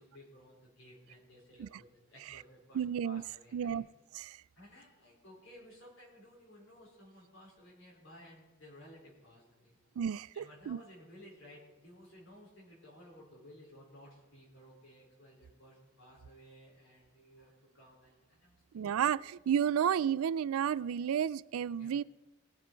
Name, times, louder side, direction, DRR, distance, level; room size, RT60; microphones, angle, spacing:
voice 1, 0.0-3.8 4.6-9.8 10.3-19.1 21.8-21.9, equal, 60° left, -4 dB, 4.4 m, -56 dB
voice 2, 2.7-3.2 3.5-3.9 4.1-4.4 10.0-10.8 18.7-22.0, right 8 dB, 80° right, 20 dB, 0.3 m, -32 dB
19.5 x 7.5 x 4.6 m, 1.1 s
head